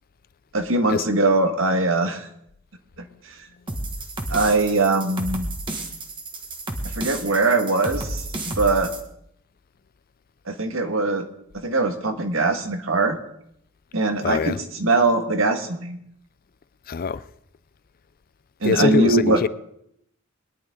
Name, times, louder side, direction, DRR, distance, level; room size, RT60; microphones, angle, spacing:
voice 1, 0.5-2.3 4.3-5.5 6.8-8.9 10.5-11.2 11.5-13.2 13.9-16.0 18.6-19.4, right 3 dB, 65° right, 1.7 m, -21 dB
sound 1, 3.7-9.0, right 2 dB, 25° right, 1.6 m, -32 dB
voice 2, 14.2-14.6 16.9-17.2 18.6-19.5, left 4 dB, 45° left, 0.4 m, -23 dB
22.0 x 11.0 x 3.7 m
head